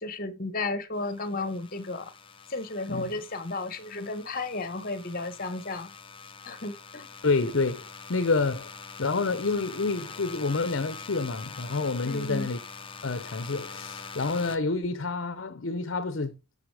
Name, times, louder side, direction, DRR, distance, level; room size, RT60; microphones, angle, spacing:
voice 1, 0.0-2.1 2.5-5.9 6.4-7.1 12.0-12.5, left 2 dB, 45° left, 1.3 m, -33 dB
sound 1, 0.9-14.6, left 5 dB, 25° left, 0.8 m, -44 dB
voice 2, 7.2-8.7 9.0-12.6 13.0-16.3, left 3 dB, 65° left, 0.8 m, -28 dB
12.5 x 5.5 x 4.8 m
head